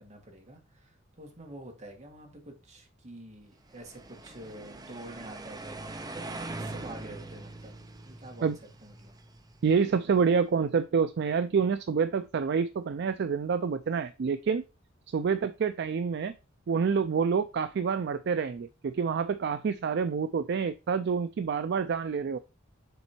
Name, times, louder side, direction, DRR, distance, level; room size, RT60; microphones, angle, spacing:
voice 1, 0.0-8.5 8.8-9.2, right 1 dB, 35° right, 1.9 m, -47 dB
sound 1, 3.7-9.8, right 2 dB, 20° right, 0.6 m, -42 dB
voice 2, 9.6-14.6 15.1-16.3 16.7-22.4, right 6 dB, 55° right, 0.4 m, -27 dB
6.9 x 4.3 x 4.5 m
head